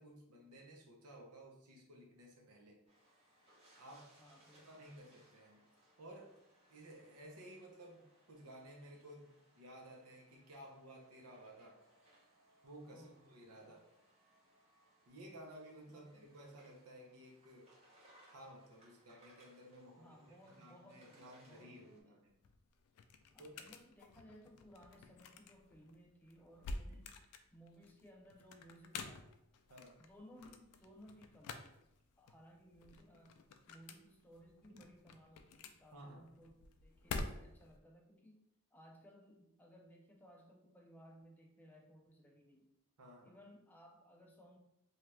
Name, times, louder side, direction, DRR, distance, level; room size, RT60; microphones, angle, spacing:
voice 1, 0.0-2.8 3.8-4.1 4.6-5.7 6.0-6.3 6.7-11.8 12.6-13.8 15.1-17.7 18.3-22.3 23.4-23.5 26.9-27.0 29.7-30.0 34.7-34.8 35.9-36.2 43.0-43.4, right 1 dB, 85° right, 0 dB, 0.7 m, -56 dB
sound 1, 2.9-22.0, right 1 dB, 30° right, 0.7 m, -69 dB
voice 2, 4.2-5.1 12.9-13.2 13.6-13.8 15.9-16.3 19.9-22.2 23.3-27.2 27.5-29.3 30.0-31.8 32.2-33.4 33.7-38.4 38.7-42.7 43.2-44.6, equal, 10° left, 1 dB, 0.3 m, -61 dB
sound 2, 22.3-37.8, left 3 dB, 85° left, 0.3 m, -50 dB
2.8 x 2.4 x 3.2 m, 0.83 s
head